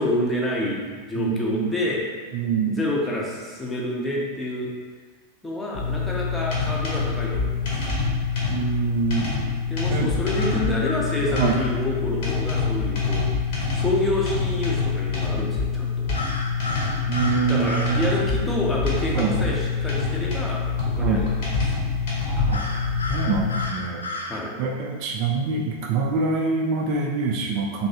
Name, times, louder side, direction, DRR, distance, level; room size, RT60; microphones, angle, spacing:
voice 1, 0.0-2.0 2.7-4.7 5.4-7.6 9.7-13.2 13.7-16.1 17.4-20.6 20.9-21.3 24.3-24.5, left 1 dB, 10° left, -4 dB, 0.6 m, -28 dB
voice 2, 1.2-1.7 2.3-2.8 8.5-9.3 9.9-10.1 11.3-11.6 17.1-18.1 19.1-19.3 21.0-21.2 22.5-22.6 23.1-24.1 24.6-27.9, right 5 dB, 45° right, 0 dB, 0.3 m, -25 dB
sound 1, 5.7-23.7, left 5 dB, 50° left, 1.0 m, -26 dB
sound 2, 10.4-11.7 16.1-18.0 22.5-24.4, left 2 dB, 75° left, 0.3 m, -33 dB
3.0 x 2.6 x 2.7 m, 1.5 s
figure-of-eight pair, 90°, 0 cm